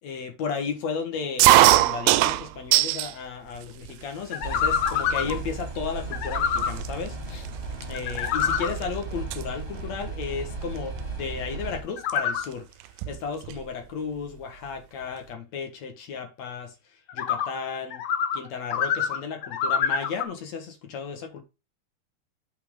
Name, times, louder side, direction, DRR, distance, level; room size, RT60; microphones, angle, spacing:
voice 1, 0.0-7.5 7.9-12.7 13.1-16.8 17.1-18.0 18.3-21.4, left 5 dB, 55° left, 2.3 m, -34 dB
sound 1, 1.4-3.1 3.6-4.2 4.9-5.0 5.2-5.6 6.3-6.4 6.6-8.8 9.1-9.4 10.8-11.0 12.1-12.2 12.4-12.5 12.8-13.7, right 16 dB, 85° right, 2.5 m, -21 dB
sound 2, 4.3-5.4 6.1-6.7 7.9-8.7 12.0-12.4 17.1-17.5 17.9-18.4 18.7-20.2, left 7 dB, 90° left, 1.3 m, -26 dB
sound 3, 4.4-11.8, right 3 dB, 20° right, 2.7 m, -35 dB
8.7 x 5.9 x 3.8 m
omnidirectional pair, 4.4 m